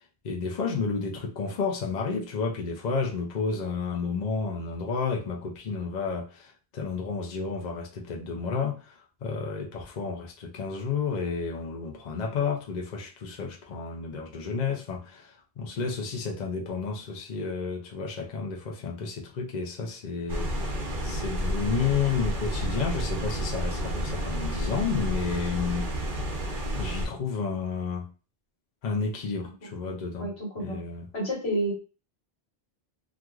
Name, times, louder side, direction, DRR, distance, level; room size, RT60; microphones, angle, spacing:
voice 1, 0.2-25.9 26.7-28.1 28.8-30.3 30.6-31.1, left 5 dB, 50° left, 0.6 m, -31 dB
sound 1, 20.3-27.1, equal, 55° right, 0.9 m, -30 dB
voice 2, 30.2-30.8 31.1-31.8, right 1 dB, 80° left, 1.4 m, -30 dB
2.9 x 2.4 x 2.3 m
omnidirectional pair, 1.0 m